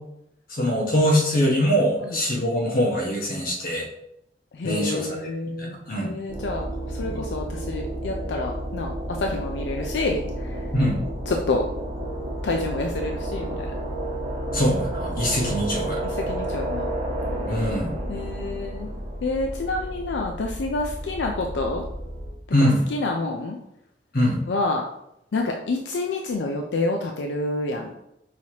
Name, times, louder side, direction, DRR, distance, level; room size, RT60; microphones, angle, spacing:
voice 1, 0.5-3.9 4.6-5.1 5.6-6.1 7.1-7.2 10.7-11.0 14.5-16.0 17.5-17.9 22.5-22.8 24.1-24.4, equal, 55° left, -1 dB, 1.1 m, -23 dB
voice 2, 4.5-10.7 11.3-11.6 12.4-13.7 16.0-16.9 18.1-18.9 19.2-21.8 22.6-23.6 24.5-24.9 25.3-28.0, left 2 dB, 85° left, 2 dB, 0.4 m, -28 dB
sound 1, 6.3-22.3, right 1 dB, 35° right, 0.9 m, -31 dB
5.5 x 3.1 x 2.8 m, 0.80 s
head